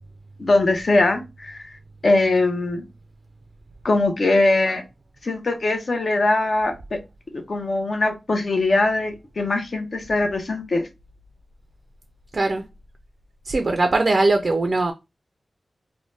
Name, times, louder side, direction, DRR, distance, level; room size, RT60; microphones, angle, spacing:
voice 1, 0.4-1.8 2.0-2.8 3.8-4.8 5.2-7.0 7.3-10.9, left 2 dB, 60° left, 0.6 m, -21 dB
voice 2, 12.3-12.6 13.5-14.9, right 2 dB, 50° right, 0.3 m, -20 dB
2.6 x 2.1 x 3.2 m
wide cardioid pair, 95°, 0 cm